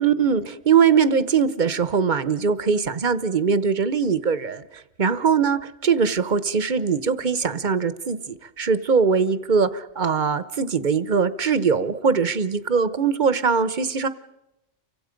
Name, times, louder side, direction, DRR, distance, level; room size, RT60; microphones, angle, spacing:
voice 1, 0.0-14.1, right 6 dB, 40° right, 14 dB, 1.0 m, -21 dB
30.0 x 24.5 x 5.2 m, 0.88 s
omnidirectional pair, 1.3 m